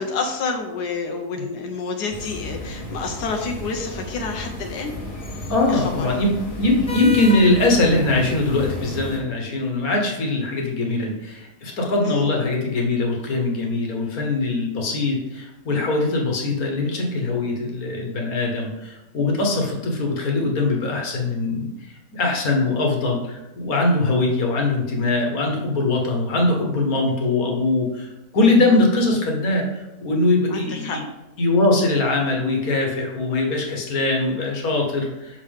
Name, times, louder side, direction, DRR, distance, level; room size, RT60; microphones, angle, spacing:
voice 1, 0.0-4.9 5.7-6.1 12.0-12.3 30.5-31.0, left 4 dB, 85° left, 3 dB, 1.3 m, -29 dB
sound 1, 2.1-9.2, left 1 dB, 35° left, 1.1 m, -32 dB
voice 2, 5.5-21.7 22.1-31.0 31.4-35.4, left 2 dB, 65° left, 0 dB, 1.6 m, -21 dB
6.1 x 5.5 x 3.4 m, 1.0 s
omnidirectional pair, 1.7 m